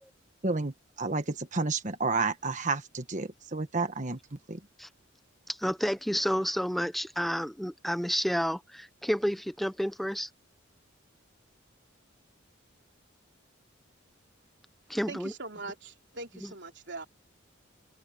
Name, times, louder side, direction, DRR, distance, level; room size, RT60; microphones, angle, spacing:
voice 1, 0.4-4.2 4.5-4.6, right 3 dB, 40° right, 1.3 m, -31 dB
voice 2, 5.5-10.3 14.9-15.3 16.4-16.5, equal, ahead, 0.7 m, -30 dB
voice 3, 15.1-17.1, right 3 dB, 60° right, 3.3 m, -41 dB
open air
head